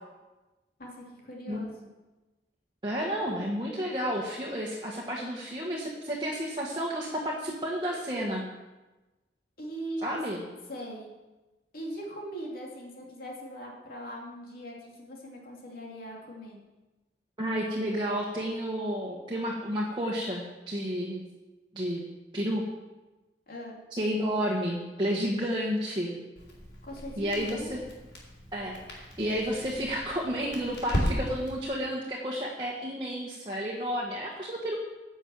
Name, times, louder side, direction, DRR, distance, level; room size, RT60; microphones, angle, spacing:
voice 1, 0.8-1.9 9.6-10.2 10.7-11.1 11.7-16.6 23.5-23.8 26.8-27.7, equal, 55° left, -2 dB, 2.8 m, -40 dB
voice 2, 2.8-8.4 10.0-10.4 17.4-21.2 21.7-22.0 22.3-22.6 23.9-26.2 27.2-27.8 28.5-34.8, equal, 25° right, -3 dB, 1.6 m, -31 dB
Crackle, 26.4-31.6, equal, 85° left, 4.0 m, -36 dB
11.0 x 6.4 x 7.6 m, 1.1 s
head